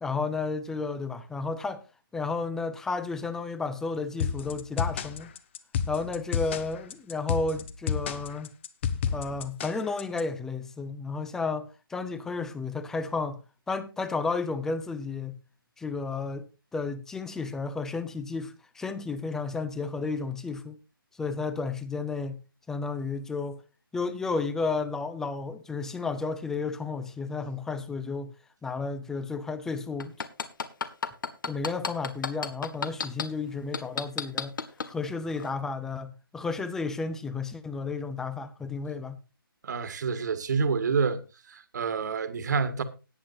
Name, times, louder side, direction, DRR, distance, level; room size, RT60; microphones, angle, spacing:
voice 1, 0.0-1.8 2.1-5.3 5.9-8.5 9.1-13.4 13.7-15.4 15.8-20.8 21.2-22.4 22.7-23.6 23.9-28.3 28.6-30.1 31.5-34.6 34.9-39.2, left 4 dB, 5° left, 0.7 m, -32 dB
sound 1, 4.2-10.2, left 7 dB, 30° left, 1.1 m, -31 dB
sound 2, 30.0-33.2 33.7-34.9 35.4-35.5, left 5 dB, 60° left, 1.8 m, -30 dB
voice 2, 39.6-41.2 41.5-42.8, right 5 dB, 50° right, 1.8 m, -28 dB
19.0 x 8.5 x 2.7 m
hypercardioid pair, 160°, 12 cm